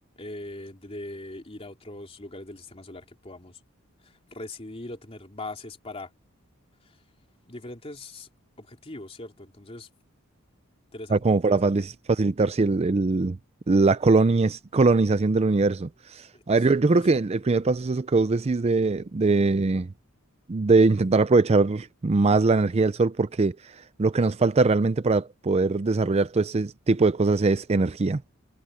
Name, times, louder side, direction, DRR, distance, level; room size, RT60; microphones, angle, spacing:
voice 1, 0.1-3.6 4.0-6.1 6.8-7.0 7.5-8.3 8.6-9.9 10.9-11.9 16.3-16.4 16.9-17.1, left 2 dB, 30° left, 3.0 m, -40 dB
voice 2, 11.1-13.4 13.7-19.9 20.5-23.7 24.0-28.2, right 3 dB, 30° right, 0.4 m, -22 dB
head